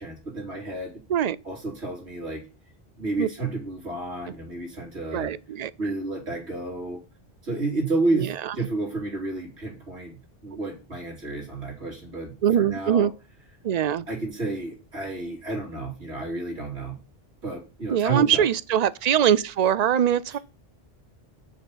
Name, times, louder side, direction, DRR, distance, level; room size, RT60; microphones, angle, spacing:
voice 1, 0.0-1.0 1.4-2.4 3.0-5.3 5.8-7.0 7.4-10.2 10.4-13.1 14.1-17.0 17.4-18.5, right 2 dB, 75° right, 3.8 m, -31 dB
voice 2, 5.1-5.7 8.1-8.5 12.4-13.1 13.6-14.1 17.9-20.4, right 9 dB, 55° right, 0.5 m, -22 dB
6.6 x 5.6 x 7.3 m
omnidirectional pair, 1.1 m